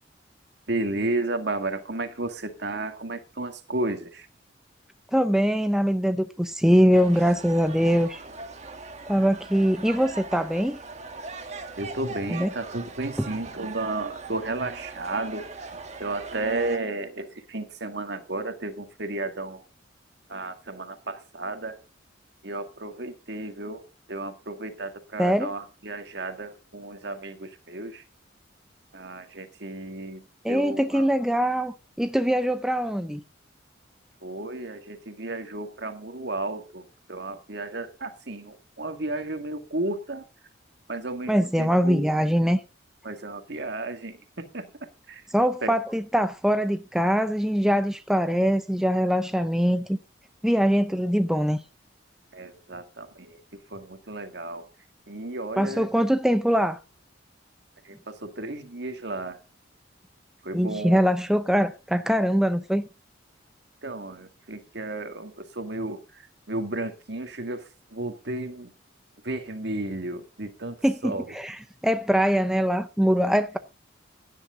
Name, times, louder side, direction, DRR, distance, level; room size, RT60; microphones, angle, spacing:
voice 1, 0.7-4.3 11.8-15.4 16.0-19.6 20.3-21.8 22.4-23.8 24.1-28.0 28.9-30.2 30.5-31.0 34.2-36.8 37.1-40.2 40.9-42.1 43.0-44.2 44.5-44.6 45.1-45.2 45.6-45.7 52.3-53.4 53.7-54.6 55.1-55.9 58.1-59.4 60.4-61.0 63.8-66.0 66.5-67.6 67.9-68.7 69.2-70.8 71.0-71.2, right 2 dB, 60° right, 1.9 m, -33 dB
voice 2, 5.1-8.2 9.1-10.8 12.3-12.5 13.2-13.3 25.2-25.5 30.4-33.2 41.3-42.6 45.3-50.0 50.4-51.6 55.6-56.8 60.5-62.9 70.8-73.6, equal, 5° right, 0.6 m, -23 dB
sound 1, 6.9-16.8, right 3 dB, 35° right, 1.6 m, -40 dB
16.0 x 10.5 x 3.7 m
head